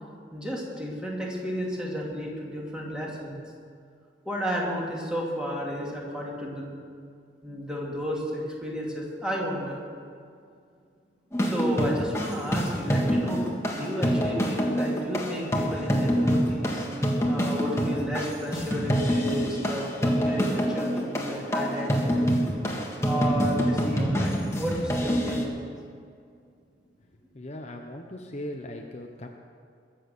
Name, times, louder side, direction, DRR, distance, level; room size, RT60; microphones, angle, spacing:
voice 1, 0.3-3.4 4.2-6.8 7.4-9.8 11.4-16.8 17.3-22.3 23.0-25.7, equal, 5° right, -4 dB, 2.7 m, -32 dB
sound 1, 11.3-25.4, equal, 15° left, 1.7 m, -26 dB
voice 2, 27.3-29.3, left 1 dB, 40° left, 3 dB, 0.9 m, -38 dB
22.0 x 7.6 x 6.6 m, 2.3 s
head